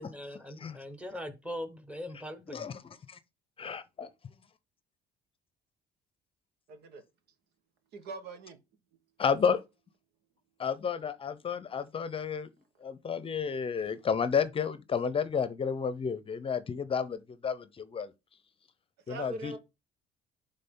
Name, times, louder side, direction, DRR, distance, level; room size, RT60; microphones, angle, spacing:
voice 1, 0.0-2.6, equal, 5° right, 1.3 m, -41 dB
voice 2, 3.6-4.1 9.2-9.6 10.6-12.5 12.8-18.1 19.1-19.6, left 6 dB, 30° left, 0.7 m, -31 dB
voice 3, 6.7-7.0 7.9-8.6 19.1-19.6, right 3 dB, 80° right, 1.4 m, -41 dB
11.0 x 3.8 x 3.8 m
cardioid pair, 110°, 17 cm